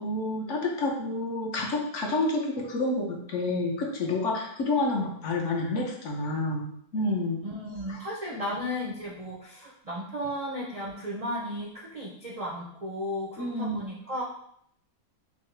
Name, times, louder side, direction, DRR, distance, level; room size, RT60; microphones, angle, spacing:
voice 1, 0.0-7.4 7.9-8.0 8.3-8.4 13.4-13.8, left 2 dB, 60° left, 0 dB, 1.0 m, -29 dB
voice 2, 7.4-14.2, equal, 60° right, -3 dB, 0.4 m, -35 dB
5.4 x 2.1 x 3.2 m, 0.68 s
omnidirectional pair, 1.5 m